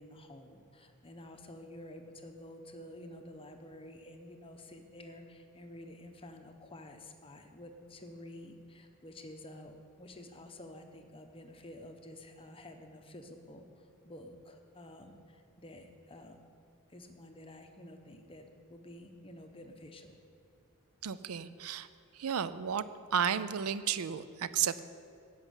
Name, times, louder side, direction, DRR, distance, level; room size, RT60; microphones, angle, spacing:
voice 1, 0.0-16.4 16.9-20.2, left 1 dB, 25° left, 5 dB, 0.8 m, -50 dB
voice 2, 21.0-21.9 22.1-22.8 23.1-24.8, right 8 dB, 75° right, 14 dB, 0.4 m, -33 dB
11.5 x 5.6 x 8.1 m, 2.6 s
head